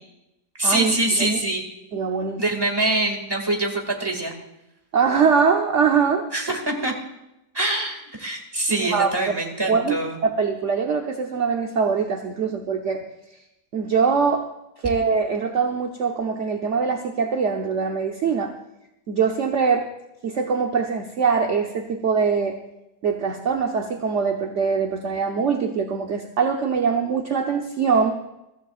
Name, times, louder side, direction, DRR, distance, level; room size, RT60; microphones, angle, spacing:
voice 1, 0.6-1.6 2.4-4.3 6.3-6.9 7.5-10.2, right 2 dB, 15° right, 2 dB, 2.1 m, -24 dB
voice 2, 1.9-2.4 4.9-6.2 8.7-9.1 9.7-10.0 10.2-13.0 13.7-14.5 14.8-18.5 19.1-19.8 20.2-22.6 23.0-28.2, right 5 dB, 55° right, 3 dB, 1.1 m, -22 dB
22.5 x 14.5 x 2.5 m, 0.89 s
omnidirectional pair, 1.6 m